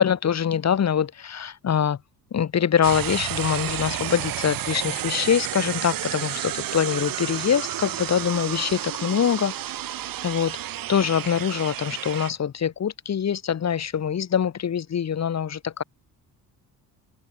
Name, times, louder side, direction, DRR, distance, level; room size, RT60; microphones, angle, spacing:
voice 1, 0.0-2.0 2.3-9.5 10.2-10.6 10.9-15.8, left 8 dB, 45° left, 2.0 m, -24 dB
sound 1, 2.8-12.3, right 12 dB, 65° right, 1.4 m, -31 dB
cardioid pair, 105°, 37 cm